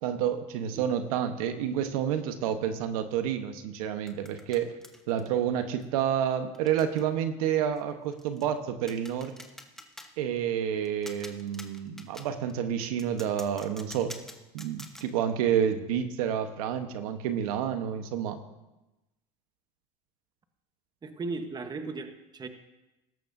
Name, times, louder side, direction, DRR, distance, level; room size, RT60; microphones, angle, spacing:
voice 1, 0.0-4.7 5.1-9.4 10.2-14.1 14.5-18.4, right 9 dB, 85° right, 8 dB, 1.1 m, -29 dB
sound 1, 4.1-5.3 5.8-6.0 6.5-7.0 7.3-7.5 7.8-7.9 8.1-8.4 8.8-10.1 10.8-12.5 13.0-15.1, left 1 dB, ahead, 1.1 m, -46 dB
voice 2, 21.0-22.5, right 3 dB, 25° right, 7 dB, 1.2 m, -36 dB
17.0 x 13.5 x 2.7 m, 1.0 s
supercardioid pair, 110°, 18 cm